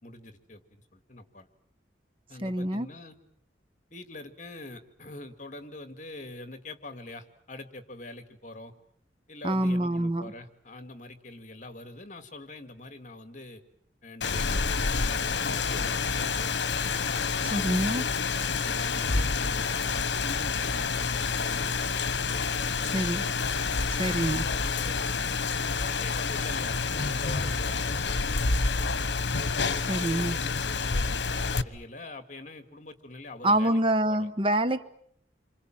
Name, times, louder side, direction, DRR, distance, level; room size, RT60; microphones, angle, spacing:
voice 1, 0.0-1.5 2.3-3.2 3.9-8.7 9.3-13.6 14.0-16.9 17.3-23.1 24.0-28.3 29.7-33.8 34.1-34.3, left 2 dB, 45° left, 10 dB, 2.2 m, -44 dB
voice 2, 2.4-2.9 9.4-10.3 17.5-18.0 22.9-23.2 23.9-24.4 29.9-30.4 33.4-34.8, right 1 dB, 30° right, 13 dB, 1.0 m, -26 dB
Rain, 14.2-31.6, left 4 dB, 75° left, 1.2 m, -28 dB
28.5 x 25.5 x 7.6 m, 0.67 s
head